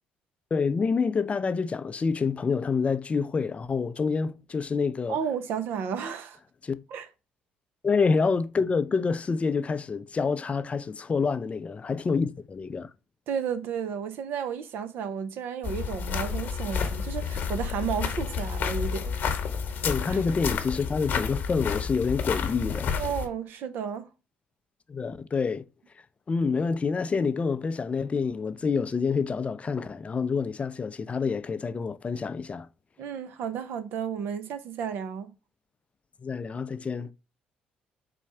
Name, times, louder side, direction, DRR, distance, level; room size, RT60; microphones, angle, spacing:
voice 1, 0.5-5.2 6.6-6.8 7.8-12.9 19.8-23.0 24.9-25.6 26.3-32.7 36.2-37.1, left 5 dB, 35° left, 0.4 m, -27 dB
voice 2, 5.1-6.4 6.9-7.1 13.3-19.2 20.1-20.2 23.0-24.1 33.0-35.3, right 7 dB, 70° right, 0.6 m, -32 dB
sound 1, 15.6-23.3, left 6 dB, 55° left, 1.0 m, -30 dB
4.2 x 2.3 x 4.3 m
hypercardioid pair, 60°, 4 cm